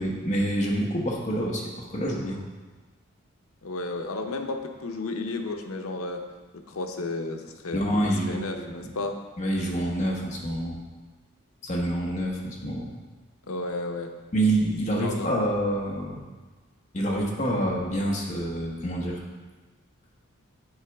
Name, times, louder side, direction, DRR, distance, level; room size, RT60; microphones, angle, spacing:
voice 1, 0.0-2.4 7.7-8.9 9.4-10.8 11.6-12.9 14.3-16.2 16.9-19.2, right 1 dB, 35° left, -2 dB, 1.0 m, -27 dB
voice 2, 3.6-6.2 6.7-9.2 13.5-14.1 15.0-15.3, left 2 dB, 90° left, 4 dB, 0.7 m, -33 dB
8.0 x 4.9 x 3.4 m, 1.3 s
head